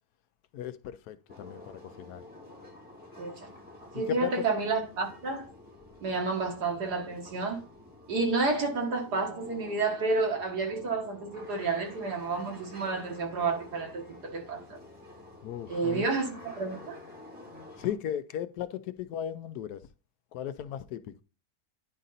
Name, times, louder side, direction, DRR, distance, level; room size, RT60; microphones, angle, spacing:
voice 1, 0.5-2.2 3.9-4.3 15.4-16.1 17.8-19.8 20.3-21.2, left 10 dB, 80° left, 1.1 m, -36 dB
sound 1, 1.3-17.9, left 2 dB, 5° right, 2.3 m, -50 dB
voice 2, 3.2-3.5 3.9-5.5 6.0-7.6 8.1-14.6 15.7-17.0, right 3 dB, 90° right, 2.1 m, -30 dB
10.0 x 3.9 x 4.1 m
omnidirectional pair, 1.7 m